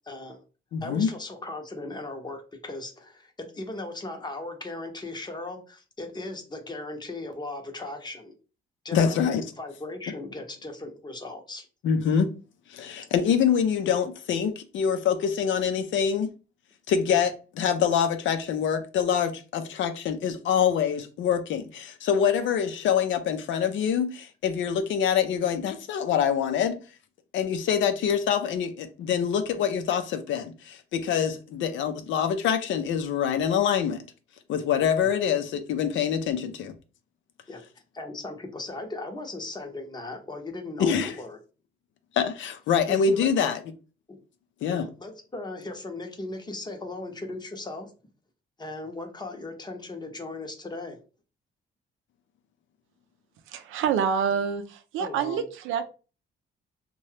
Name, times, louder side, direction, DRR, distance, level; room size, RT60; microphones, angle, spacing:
voice 1, 0.0-0.4 0.8-8.3 8.8-9.2 9.6-11.7 35.0-35.1 37.5-37.6 37.9-41.4 42.9-43.3 44.1-44.2 44.7-47.9 48.6-51.0 55.0-55.4, left 2 dB, 20° left, 0.7 m, -37 dB
voice 2, 0.7-1.1 8.9-9.4 11.8-12.3 12.7-16.3 16.9-26.8 27.3-30.7 31.1-34.0 34.5-36.7 40.8-41.1 42.1-43.6 44.6-44.9, left 7 dB, 70° left, 0.5 m, -25 dB
voice 3, 53.5-55.8, right 7 dB, 85° right, 0.4 m, -27 dB
2.7 x 2.2 x 3.2 m
cardioid pair, 90°, 20 cm